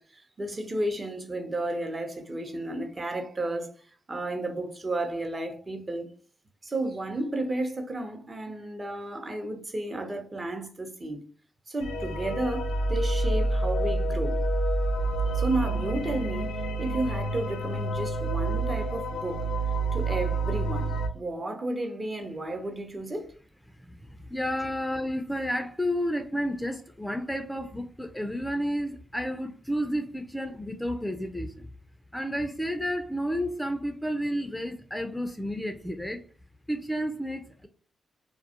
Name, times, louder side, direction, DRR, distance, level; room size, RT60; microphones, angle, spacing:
voice 1, 0.0-6.1 6.6-11.2 11.7-14.4 15.3-19.5 19.9-23.3 24.6-24.7, right 1 dB, 35° right, 0.7 m, -32 dB
sound 1, 11.8-21.1, right 2 dB, 85° left, 0.3 m, -28 dB
voice 2, 24.3-31.7 32.1-36.2 36.7-37.7, equal, 5° left, 0.4 m, -31 dB
2.3 x 2.0 x 2.8 m
supercardioid pair, 45°, 0 cm